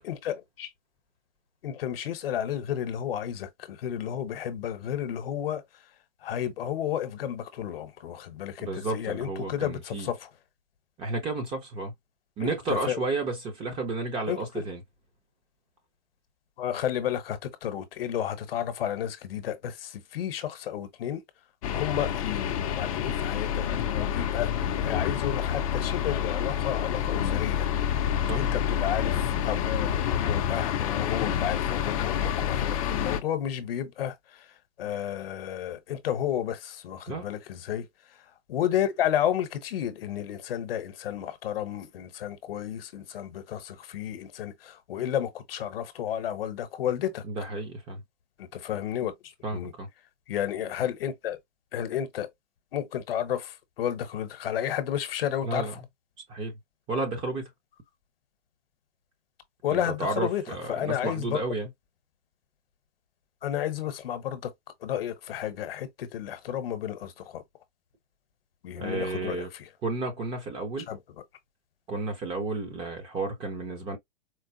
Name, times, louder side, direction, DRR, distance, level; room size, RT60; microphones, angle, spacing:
voice 1, 0.0-0.7 1.6-5.6 6.2-10.3 12.4-13.0 14.3-14.6 16.6-21.2 21.7-27.7 28.3-29.9 30.2-34.5 34.8-37.9 38.5-47.2 48.4-49.7 50.3-51.4 51.7-52.3 52.7-55.7 59.6-60.4 60.7-61.4 63.4-64.5 64.8-67.4 68.6-69.4 70.9-71.0, left 10 dB, 55° left, 1.0 m, -32 dB
voice 2, 8.6-10.1 11.0-11.9 12.4-14.8 28.2-28.4 37.1-37.3 47.2-48.0 49.4-49.9 55.4-55.7 56.3-56.5 56.9-57.5 59.7-61.7 68.8-69.5 69.8-70.9 71.9-74.0, right 3 dB, 15° right, 0.7 m, -32 dB
sound 1, 21.6-33.2, left 9 dB, 30° left, 0.6 m, -28 dB
4.5 x 2.1 x 2.6 m
hypercardioid pair, 155°, 34 cm